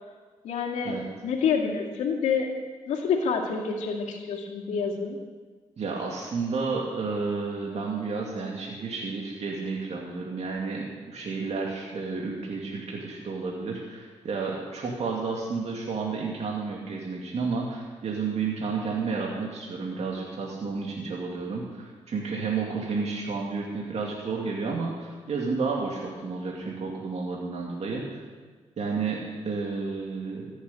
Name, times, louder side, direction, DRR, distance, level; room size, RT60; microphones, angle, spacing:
voice 1, 0.4-1.0 1.2-2.5 2.9-5.2, left 6 dB, 90° left, 0 dB, 2.2 m, -27 dB
voice 2, 5.8-28.2 28.8-30.5, right 4 dB, 65° right, -2 dB, 2.5 m, -31 dB
14.5 x 8.1 x 8.9 m, 1.5 s
supercardioid pair, 55°, 12 cm